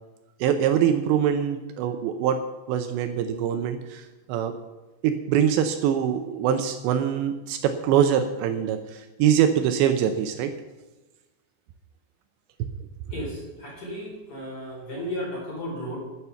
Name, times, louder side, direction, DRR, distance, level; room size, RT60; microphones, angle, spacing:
voice 1, 0.4-4.5 5.0-10.5 12.6-12.7, right 9 dB, 80° right, 8 dB, 2.9 m, -24 dB
voice 2, 13.0-16.0, equal, 30° left, -2 dB, 4.5 m, -34 dB
11.0 x 10.0 x 7.0 m, 1.1 s
omnidirectional pair, 5.3 m